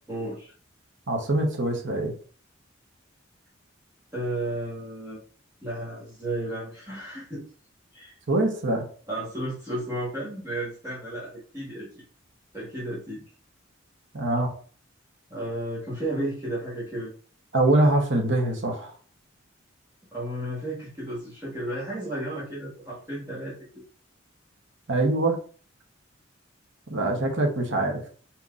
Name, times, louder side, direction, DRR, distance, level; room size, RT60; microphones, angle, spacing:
voice 1, 0.1-0.5 4.1-5.2 5.6-7.5 7.9-8.2 9.1-12.0 12.5-13.2 15.3-17.1 20.1-23.8, right 1 dB, 15° right, -10 dB, 1.2 m, -33 dB
voice 2, 1.1-2.1 8.3-8.9 14.1-14.5 17.5-18.9 24.9-25.4 26.9-28.0, right 2 dB, 60° right, 2 dB, 0.9 m, -23 dB
4.2 x 4.0 x 2.4 m, 0.43 s
head